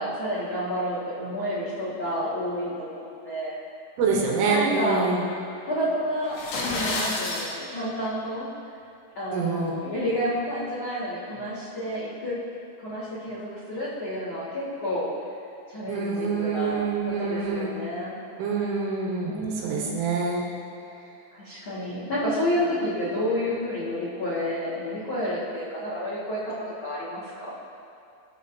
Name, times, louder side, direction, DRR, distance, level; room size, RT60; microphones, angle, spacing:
voice 1, 0.0-3.6 4.5-5.1 5.6-8.5 9.1-12.4 12.8-15.1 15.7-18.2 19.2-20.0 21.3-27.5, equal, 75° left, -11 dB, 1.1 m, -30 dB
voice 2, 4.0-5.3 9.3-9.7 15.9-17.7 18.4-20.4, right 4 dB, 75° right, -2 dB, 3.6 m, -26 dB
sound 1, 6.2-7.5, left 2 dB, 60° left, 2.9 m, -29 dB
20.5 x 7.8 x 2.8 m, 2.5 s
omnidirectional pair, 5.8 m